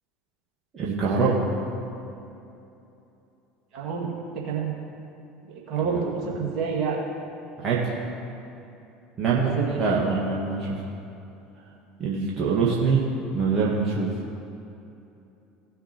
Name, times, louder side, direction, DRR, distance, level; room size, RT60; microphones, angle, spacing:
voice 1, 0.7-1.4 5.8-6.3 7.6-7.9 9.2-10.8 12.0-13.1 13.3-14.1, right 4 dB, 35° right, -5 dB, 1.7 m, -24 dB
voice 2, 3.7-4.1 4.4-4.7 5.7-7.0 9.4-9.9, right 6 dB, 50° right, -3 dB, 2.2 m, -28 dB
17.5 x 6.9 x 3.0 m, 2.8 s
figure-of-eight pair, 70°, 0 cm